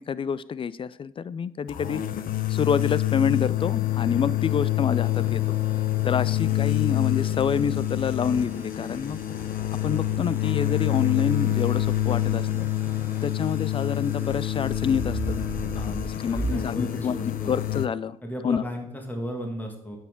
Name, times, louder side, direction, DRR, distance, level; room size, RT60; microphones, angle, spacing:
voice 1, 0.0-2.0 2.5-5.6 6.0-9.2 9.8-12.7 13.2-15.4 15.8-17.2 17.5-18.2 18.4-18.6, left 7 dB, 30° left, 18 dB, 0.4 m, -27 dB
sound 1, 1.7-17.9, left 13 dB, 60° left, 0.8 m, -26 dB
sound 2, 5.0-16.7, right 2 dB, 10° right, 0.7 m, -39 dB
voice 2, 16.3-17.6 18.2-20.0, equal, 10° left, 2 dB, 1.8 m, -35 dB
8.8 x 6.2 x 3.7 m, 0.84 s
supercardioid pair, 65°, 17 cm